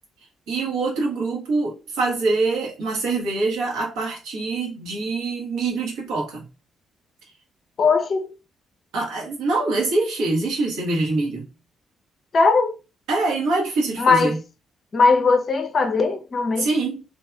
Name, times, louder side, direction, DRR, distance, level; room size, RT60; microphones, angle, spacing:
voice 1, 0.5-6.4 8.9-11.5 13.1-14.4 16.6-17.0, right 3 dB, 70° right, 1.2 m, -24 dB
voice 2, 7.8-8.3 12.3-12.8 14.0-14.4 14.9-16.7, left 4 dB, 45° left, 0.5 m, -19 dB
3.2 x 2.6 x 2.4 m
figure-of-eight pair, 40°, 0 cm